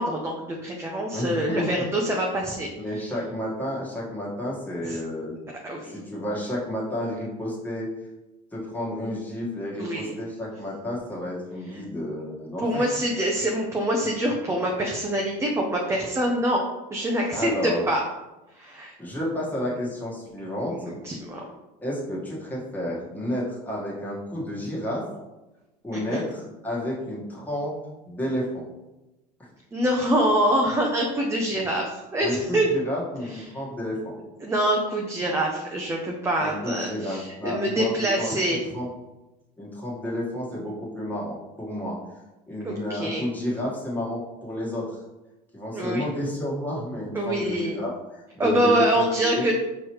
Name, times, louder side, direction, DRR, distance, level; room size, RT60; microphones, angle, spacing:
voice 1, 0.0-2.7 4.8-5.0 5.6-6.0 9.8-10.2 12.6-16.6 16.9-18.0 18.5-18.9 20.9-21.4 25.9-26.2 29.7-32.7 33.3-33.4 34.4-38.6 42.6-43.2 45.7-46.0 47.1-47.8 48.4-49.5, right 1 dB, 15° right, -1 dB, 0.6 m, -25 dB
voice 2, 1.1-1.8 2.7-5.3 5.8-7.9 8.5-12.9 17.3-17.8 19.0-20.9 21.8-25.0 25.8-27.7 28.1-28.6 31.5-31.6 32.2-34.1 36.4-38.9 39.6-42.0 42.5-45.0 45.5-47.9 48.3-49.0 49.3-49.5, left 1 dB, 10° left, -5 dB, 1.5 m, -31 dB
4.5 x 3.1 x 3.1 m, 1.0 s
supercardioid pair, 100°, 20 cm